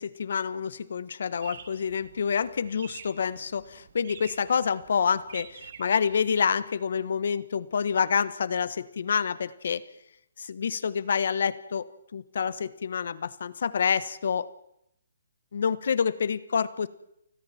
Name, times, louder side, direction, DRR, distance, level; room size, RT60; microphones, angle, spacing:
voice 1, 0.0-9.8 10.4-11.8 12.1-14.5 15.5-16.9, left 6 dB, 60° left, 16 dB, 1.3 m, -27 dB
sound 1, 1.4-6.6, right 7 dB, 50° right, 2.2 m, -48 dB
29.5 x 20.5 x 4.4 m, 0.76 s
hypercardioid pair, 160°, 0 cm